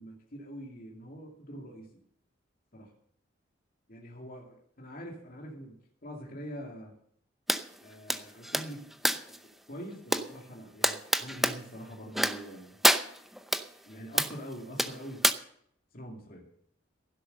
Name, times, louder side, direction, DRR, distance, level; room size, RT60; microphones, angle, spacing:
voice 1, 0.0-1.9 2.7-2.9 3.9-5.8 6.0-6.9 7.8-9.4 9.7-12.8 13.9-15.2 15.9-16.4, equal, 50° left, -1 dB, 2.4 m, -44 dB
sound 1, 7.5-7.6 8.1-9.4 10.1-10.3 10.8-11.6 12.1-12.5 12.8-13.6 14.2-14.4 14.8-15.3, equal, ahead, 0.7 m, -27 dB
16.0 x 7.8 x 6.7 m, 0.67 s
head